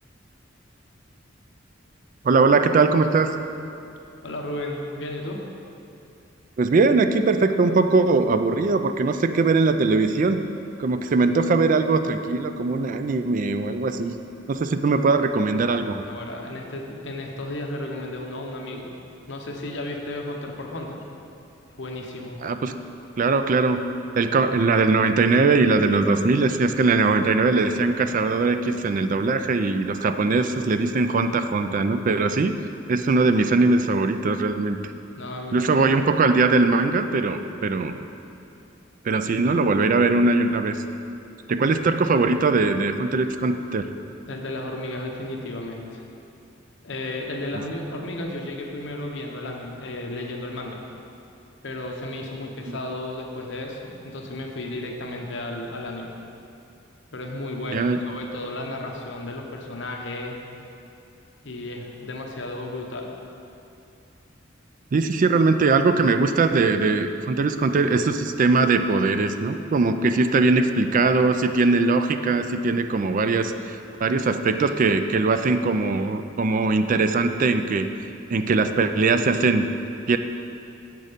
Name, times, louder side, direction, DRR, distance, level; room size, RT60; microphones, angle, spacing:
voice 1, 2.2-3.3 6.6-10.4 10.8-14.1 14.5-16.1 22.4-22.7 23.2-23.8 24.1-32.5 32.9-34.8 35.5-37.9 39.0-40.7 41.5-43.9 52.7-52.8 57.7-58.0 64.9-79.7 80.1-80.2, right 3 dB, 45° right, 9 dB, 0.4 m, -21 dB
voice 2, 4.2-5.4 16.1-18.9 19.3-21.0 21.8-22.4 35.2-35.9 44.3-46.0 46.8-50.8 51.6-56.2 57.1-60.4 61.4-63.1, left 1 dB, 70° left, 1 dB, 1.0 m, -33 dB
7.5 x 6.5 x 5.2 m, 2.7 s
head